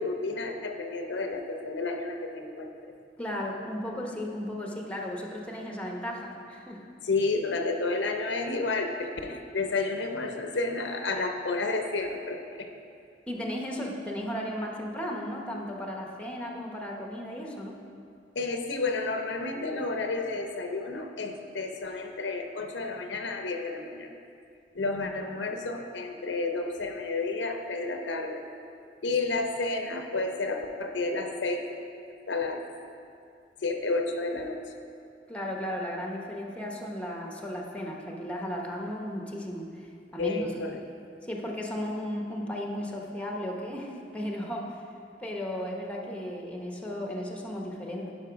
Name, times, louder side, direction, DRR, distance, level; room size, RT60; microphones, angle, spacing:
voice 1, 0.0-2.9 7.0-12.7 18.3-24.1 24.7-28.4 29.0-31.7 32.3-32.6 33.6-34.6 40.2-40.8 48.0-48.1, left 3 dB, 75° left, 4 dB, 0.7 m, -31 dB
voice 2, 3.2-6.8 13.3-17.8 35.3-40.5 41.2-44.8 45.2-48.1, equal, 5° left, 0 dB, 0.9 m, -35 dB
10.5 x 5.3 x 5.0 m, 2.4 s
head